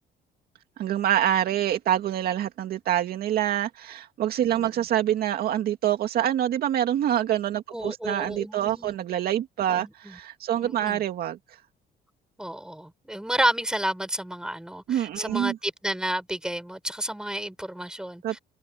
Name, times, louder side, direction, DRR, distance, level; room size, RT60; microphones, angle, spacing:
voice 1, 0.8-11.4 14.9-15.6 18.2-18.4, right 11 dB, 65° right, 2.3 m, -26 dB
voice 2, 4.5-4.8 7.7-8.9 9.8-10.2 10.6-11.0 12.4-18.4, right 1 dB, 5° right, 7.9 m, -31 dB
cardioid pair, 110°, 17 cm